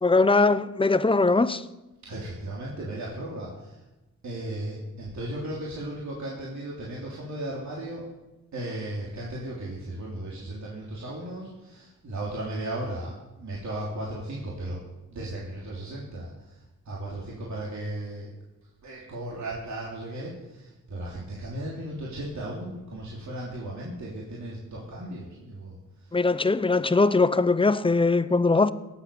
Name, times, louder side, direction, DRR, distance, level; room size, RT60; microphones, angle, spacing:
voice 1, 0.0-1.6 26.1-28.7, left 3 dB, 15° left, 0.6 m, -21 dB
voice 2, 2.1-3.7 4.2-8.1 8.5-14.8 15.1-16.5 16.8-18.3 18.8-25.8, right 1 dB, 65° right, 3.2 m, -36 dB
18.5 x 8.2 x 6.8 m
wide cardioid pair, 95°, 31 cm